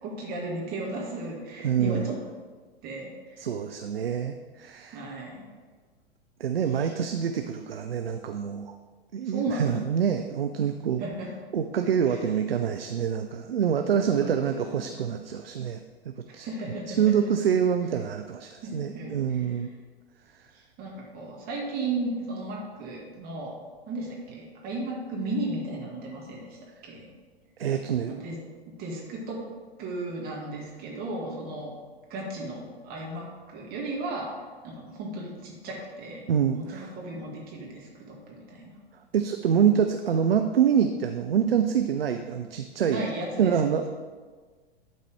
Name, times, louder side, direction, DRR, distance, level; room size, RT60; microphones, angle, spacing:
voice 1, 0.0-2.2 2.8-3.4 4.9-5.5 6.8-6.9 9.2-9.8 11.0-11.3 12.1-12.2 14.0-14.8 16.3-17.3 18.6-19.2 20.5-23.6 23.9-26.6 26.8-27.1 28.1-29.4 29.8-31.7 32.1-34.3 34.6-36.3 36.5-38.8 42.8-43.6, right 2 dB, 30° right, -3 dB, 1.9 m, -35 dB
voice 2, 1.6-2.1 3.4-5.0 6.4-8.7 9.1-11.0 11.5-16.5 16.9-19.7 27.6-28.1 36.3-36.9 39.1-43.1 43.4-43.9, right 8 dB, 70° right, 6 dB, 0.6 m, -26 dB
12.0 x 4.1 x 4.7 m, 1.5 s
figure-of-eight pair, 100°, 30 cm